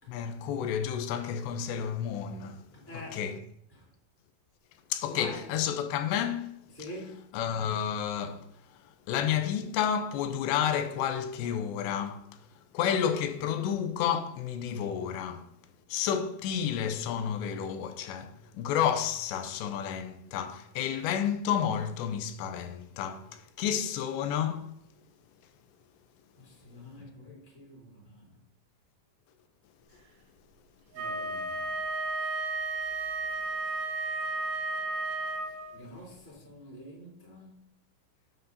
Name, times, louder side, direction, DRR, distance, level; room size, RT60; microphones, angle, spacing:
voice 1, 0.1-2.6 2.9-3.4 4.9-6.5 7.3-8.5 9.1-12.2 12.7-15.5 15.9-24.7 27.0-27.1, left 8 dB, 80° left, 2.8 m, -31 dB
voice 2, 2.9-3.2 3.7-3.9 5.1-5.4 6.7-7.3 26.4-28.3 30.9-31.9 35.7-37.6, equal, 5° left, 2.3 m, -46 dB
Wind instrument woodwind instrument, 30.9-35.8, right 2 dB, 75° right, 2.9 m, -33 dB
9.3 x 8.1 x 2.7 m
omnidirectional pair, 5.1 m